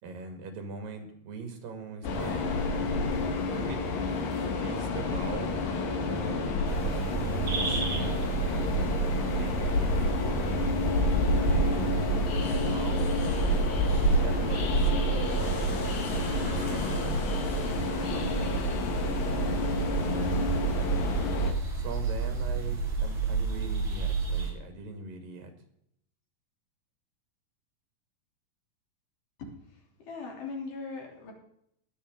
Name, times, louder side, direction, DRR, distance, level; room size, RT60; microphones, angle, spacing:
voice 1, 0.0-2.5 3.5-3.8 4.6-5.6 6.0-6.4 7.4-8.3 9.3-10.4 11.5-12.1 12.4-15.8 16.5-17.0 18.0-18.7 19.8-20.5 21.8-25.5, right 4 dB, 85° right, 6 dB, 3.8 m, -41 dB
Train, 2.0-21.5, left 2 dB, 90° left, 3.4 m, -29 dB
sound 1, 6.7-24.5, right 4 dB, 35° right, 3.5 m, -31 dB
voice 2, 14.4-15.0 29.4-31.3, left 4 dB, 70° left, 0 dB, 4.7 m, -41 dB
20.5 x 8.2 x 3.8 m, 0.73 s
omnidirectional pair, 3.9 m